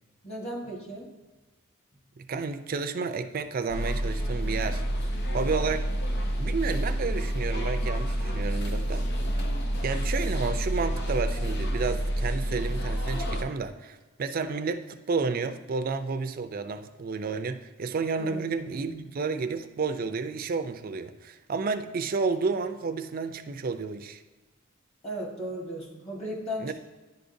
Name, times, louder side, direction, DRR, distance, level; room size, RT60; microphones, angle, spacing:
voice 1, 0.2-1.1 18.2-18.4 25.0-26.7, equal, 30° left, -2 dB, 1.5 m, -35 dB
voice 2, 2.2-4.8 5.3-5.9 6.4-9.1 9.8-24.2 26.6-26.7, right 4 dB, 45° right, 8 dB, 0.4 m, -31 dB
sound 1, 3.7-13.4, right 1 dB, 50° left, 0.7 m, -28 dB
10.5 x 5.0 x 2.6 m, 1.2 s
head